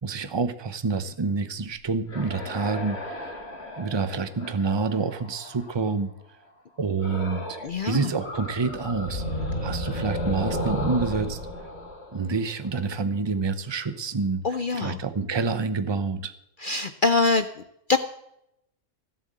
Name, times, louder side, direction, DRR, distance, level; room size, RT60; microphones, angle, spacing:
voice 1, 0.0-3.4 3.8-6.1 6.8-9.2 9.6-11.4 12.1-14.4 14.8-16.3, right 4 dB, 25° right, 11 dB, 0.6 m, -27 dB
sound 1, 1.7-5.9 7.0-7.8 8.0-12.9, left 1 dB, 45° left, 2.2 m, -34 dB
voice 2, 7.6-8.1 14.4-15.0 16.6-17.5 17.9-18.0, left 3 dB, 60° left, 10 dB, 0.5 m, -23 dB
16.5 x 7.8 x 7.6 m, 0.80 s
omnidirectional pair, 1.6 m